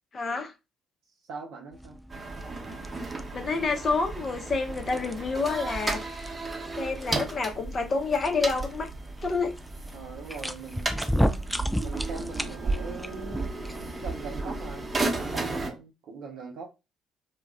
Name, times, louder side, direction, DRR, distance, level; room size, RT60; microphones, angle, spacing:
voice 1, 0.1-0.5 3.3-6.2 6.8-8.9 9.2-9.5, left 4 dB, 40° left, 0.7 m, -28 dB
voice 2, 1.2-2.0 9.9-11.5 11.8-13.5 14.0-16.7, right 5 dB, 60° right, 0.5 m, -41 dB
sound 1, 1.7-14.0, equal, 5° left, 0.3 m, -35 dB
sound 2, 2.1-15.7, right 3 dB, 25° right, 0.9 m, -34 dB
2.3 x 2.1 x 3.5 m
figure-of-eight pair, 45°, 0 cm